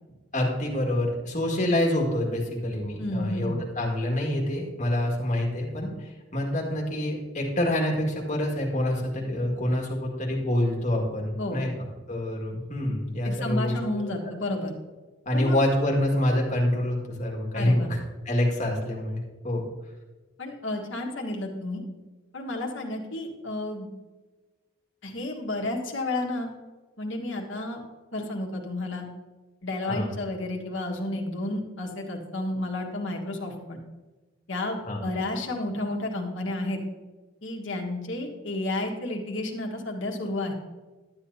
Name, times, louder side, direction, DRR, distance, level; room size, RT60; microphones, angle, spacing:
voice 1, 0.3-14.1 15.3-18.0 18.2-19.6 29.9-30.1 34.8-35.0, left 1 dB, 35° left, -1 dB, 1.9 m, -27 dB
voice 2, 3.0-3.5 11.4-11.6 13.2-14.7 15.3-15.6 17.5-17.9 20.4-21.8 22.3-23.9 25.0-26.5 27.0-27.8 28.1-29.1 29.6-33.8 34.5-36.8 37.4-40.5, left 2 dB, 65° left, 0 dB, 1.5 m, -31 dB
11.5 x 8.7 x 2.8 m, 1.2 s
head